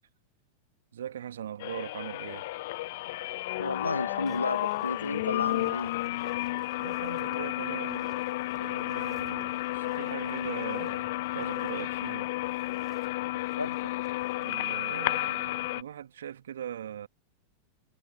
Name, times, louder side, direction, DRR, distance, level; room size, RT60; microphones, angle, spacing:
voice 1, 0.9-2.5 6.8-8.2 8.5-12.3 14.3-17.1, right 10 dB, 65° right, 2.1 m, -40 dB
sound 1, 1.6-15.8, left 18 dB, 50° left, 0.5 m, -32 dB
voice 2, 3.6-5.9 13.6-13.9, left 3 dB, 80° left, 1.7 m, -32 dB
sound 2, 4.3-15.3, right 10 dB, 25° right, 3.8 m, -56 dB
figure-of-eight pair, 90°, 0 cm